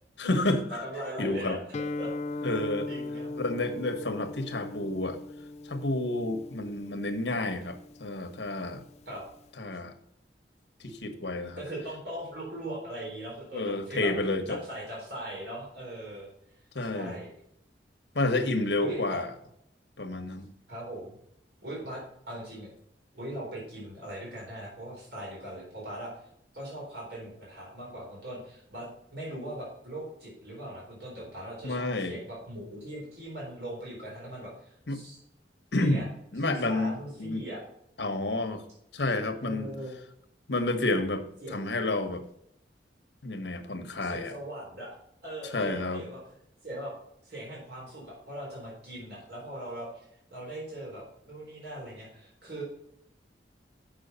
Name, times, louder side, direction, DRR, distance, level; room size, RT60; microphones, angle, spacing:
voice 1, 0.2-0.8 1.2-1.6 2.4-2.9 3.4-5.2 5.6-8.9 9.6-9.9 10.8-11.6 13.5-14.6 16.7-17.1 18.1-19.3 20.0-20.5 31.6-32.2 34.9-35.0 35.7-36.0 36.3-37.4 38.0-38.6 38.9-39.7 40.5-41.2 41.5-42.2 43.2-44.3 45.5-46.0, left 2 dB, 70° left, 9 dB, 1.2 m, -30 dB
voice 2, 0.7-1.6 2.0-2.5 2.9-3.3 9.1-9.2 11.6-14.1 14.5-16.3 16.8-17.3 18.2-18.5 18.8-19.2 20.7-21.2 21.6-22.7 23.1-26.1 26.5-35.2 35.8-36.1 36.4-37.6 39.4-40.0 41.4-41.6 44.0-45.0 45.2-46.2 46.6-46.9 47.2-49.9 50.3-52.6, right 1 dB, 60° right, -4 dB, 4.1 m, -40 dB
Guitar, 1.7-9.5, left 2 dB, 35° left, 0.4 m, -39 dB
7.6 x 6.3 x 5.5 m, 0.75 s
head